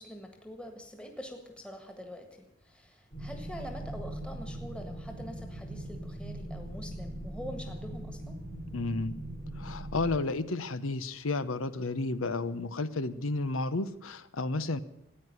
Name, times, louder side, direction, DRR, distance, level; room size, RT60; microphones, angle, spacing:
voice 1, 0.0-8.4, equal, 5° left, 4 dB, 1.7 m, -45 dB
sound 1, 3.1-10.2, right 1 dB, 50° left, 4.0 m, -40 dB
voice 2, 8.7-9.2 9.6-14.8, left 3 dB, 80° left, 14 dB, 0.9 m, -32 dB
14.5 x 9.7 x 9.6 m, 0.89 s
head